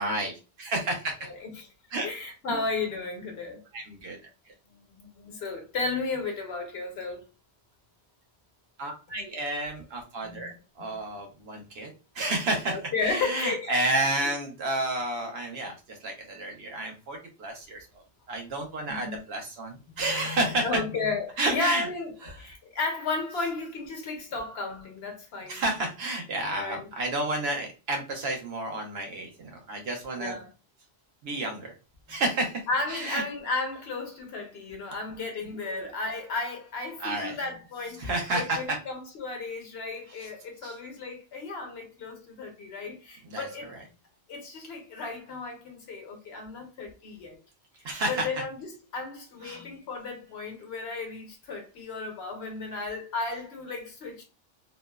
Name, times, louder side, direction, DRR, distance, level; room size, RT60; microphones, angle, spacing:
voice 1, 0.0-1.1 1.9-2.1 2.5-2.6 3.7-4.2 8.8-20.8 21.4-21.9 22.2-22.5 25.5-30.4 31.2-31.7 32.1-33.2 35.4-35.9 37.0-37.4 37.8-38.8 40.1-40.3 40.6-40.7 43.2-43.9 47.8-48.4 49.4-49.6, right 2 dB, 75° right, 1.0 m, -31 dB
voice 2, 1.2-1.7 2.0-3.6 4.7-7.2 10.2-11.1 12.7-14.1 18.9-19.2 20.0-25.6 26.5-26.9 30.1-30.5 32.7-43.7 44.3-47.4 48.1-54.2, left 3 dB, 75° left, 1.1 m, -34 dB
3.0 x 2.0 x 2.2 m
omnidirectional pair, 1.1 m